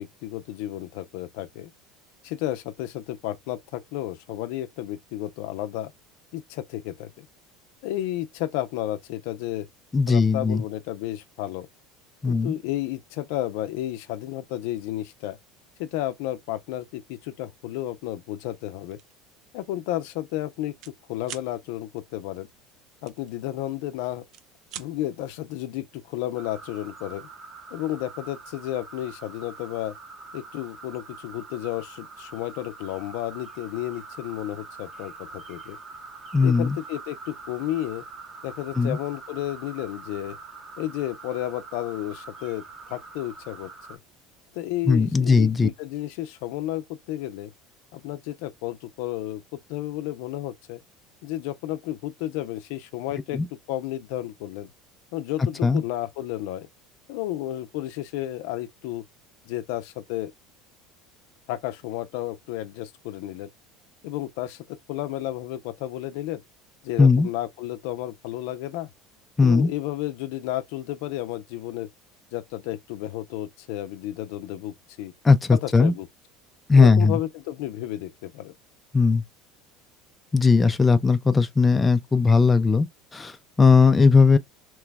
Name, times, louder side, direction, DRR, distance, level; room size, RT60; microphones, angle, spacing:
voice 1, 0.0-1.7 2.2-5.9 6.3-7.3 7.8-9.7 10.1-11.7 12.2-15.4 15.8-19.0 19.5-20.7 21.1-22.5 23.0-24.2 24.7-27.3 27.7-29.9 30.3-35.8 36.4-38.0 38.4-40.4 40.8-44.0 44.5-47.5 47.9-50.8 51.2-53.4 53.7-54.7 55.1-56.7 57.1-59.0 59.5-60.3 61.5-63.5 64.0-66.4 66.8-68.9 69.4-71.9 72.3-75.1 75.5-76.1 76.7-78.5, left 14 dB, 75° left, 0.5 m, -32 dB
voice 2, 9.9-10.6 12.2-12.5 36.3-36.8 38.8-39.0 44.9-45.7 53.3-53.5 55.6-55.8 67.0-67.3 69.4-69.7 75.2-75.9 76.7-77.2 78.9-79.2 80.3-82.9 83.1-84.4, left 4 dB, 15° left, 0.4 m, -18 dB
sound 1, 18.9-19.2 19.6-19.8 20.0-21.0 21.2-21.5 23.1-23.9 24.2-24.9, right 10 dB, 55° right, 0.5 m, -42 dB
sound 2, 26.4-44.0, right 4 dB, 25° right, 0.8 m, -44 dB
3.0 x 2.3 x 3.3 m
supercardioid pair, 110°, 0 cm